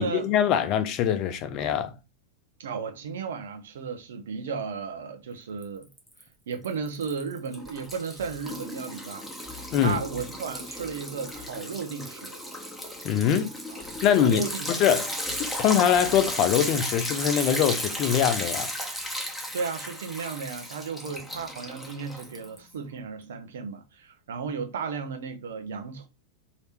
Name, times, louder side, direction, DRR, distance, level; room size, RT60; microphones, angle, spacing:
voice 1, 0.0-1.9 9.7-10.0 13.0-13.5 14.0-15.1 15.4-18.7, left 9 dB, 40° left, 0.6 m, -23 dB
voice 2, 2.6-5.9 6.5-12.4 13.7-13.8 14.2-14.7 19.5-26.1, right 5 dB, 60° right, 0.8 m, -34 dB
Liquid, 5.6-6.2 6.5-22.7, equal, ahead, 1.2 m, -35 dB
3.3 x 2.9 x 4.4 m
figure-of-eight pair, 90°, 0 cm